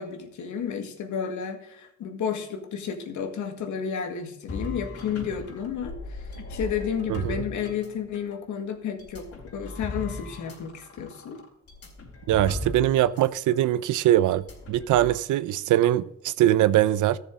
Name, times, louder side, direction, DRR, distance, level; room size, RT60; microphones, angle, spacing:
voice 1, 0.0-9.3 9.5-11.4, left 7 dB, 75° left, 1.9 m, -32 dB
sound 1, 4.5-8.4 9.0-13.2 13.5-13.7 14.3-15.2, left 2 dB, 50° left, 4.0 m, -38 dB
voice 2, 7.1-7.4 12.3-17.2, right 13 dB, 80° right, 0.6 m, -22 dB
14.0 x 6.9 x 3.8 m
cardioid pair, 90°, 30 cm